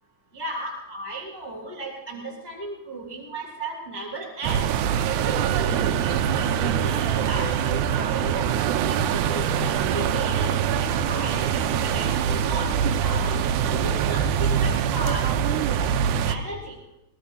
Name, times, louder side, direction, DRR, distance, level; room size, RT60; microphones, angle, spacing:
voice 1, 0.3-4.7 5.1-8.5 8.9-10.5 10.8-13.4 13.7-16.8, right 1 dB, 10° left, -3 dB, 2.0 m, -35 dB
sound 1, 4.4-16.4, right 8 dB, 80° right, 2.0 m, -24 dB
21.0 x 20.0 x 2.7 m, 0.95 s
omnidirectional pair, 3.7 m